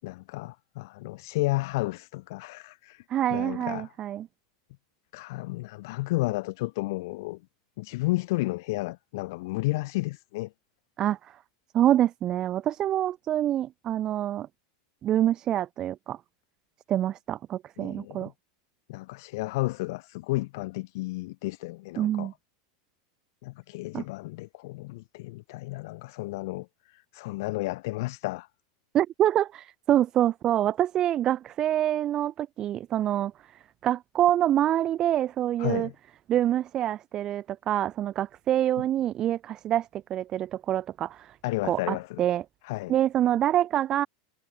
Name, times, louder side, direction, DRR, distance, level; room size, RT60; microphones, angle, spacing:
voice 1, 0.0-3.0 3.3-3.9 5.1-7.4 7.8-10.5 17.8-18.3 18.9-22.3 23.4-28.5 35.6-35.9 41.4-42.2 42.6-43.0, left 21 dB, 65° left, 5.5 m, -32 dB
voice 2, 3.1-4.3 11.0-11.4 11.7-14.5 15.0-16.2 16.9-18.3 22.0-22.3 23.9-24.0 28.9-33.3 33.8-35.9 36.3-41.4 41.7-42.4 42.9-44.1, right 12 dB, 30° right, 0.8 m, -26 dB
supercardioid pair, 135°, 2 cm